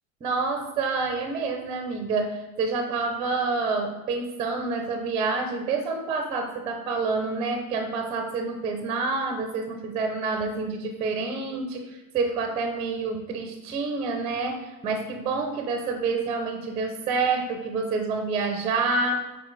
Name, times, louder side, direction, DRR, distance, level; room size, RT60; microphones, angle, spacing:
voice 1, 0.2-19.1, right 4 dB, 15° right, 4 dB, 0.4 m, -28 dB
9.4 x 4.1 x 3.1 m, 1.1 s
supercardioid pair, 145°, 42 cm